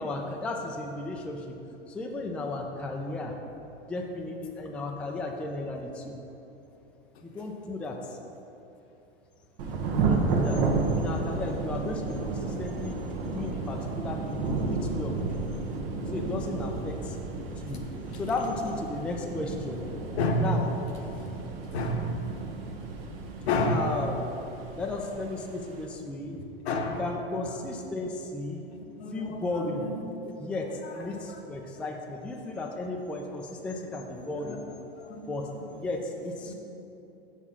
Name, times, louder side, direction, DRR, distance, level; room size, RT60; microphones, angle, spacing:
voice 1, 0.0-1.6 1.9-3.3 3.9-6.2 7.2-8.2 9.9-10.6 10.9-13.0 13.3-15.2 16.1-17.2 17.6-17.8 18.1-19.9 20.4-20.7 23.7-24.3 24.7-26.4 27.0-28.6 29.1-29.9 30.4-34.7 35.3-36.5, left 2 dB, 5° left, 1 dB, 0.3 m, -34 dB
Thunder / Rain, 9.6-25.8, right 3 dB, 60° right, 1.1 m, -32 dB
voice 2, 20.2-20.5 21.7-22.1 23.5-23.8 26.7-27.0 27.7-27.8 28.7-29.4 29.7-29.9 30.2-30.3 34.4-34.6 35.0-35.2 36.5-36.6, left 2 dB, 75° left, 3 dB, 1.0 m, -29 dB
5.7 x 4.8 x 5.6 m, 2.9 s
hypercardioid pair, 105°, 32 cm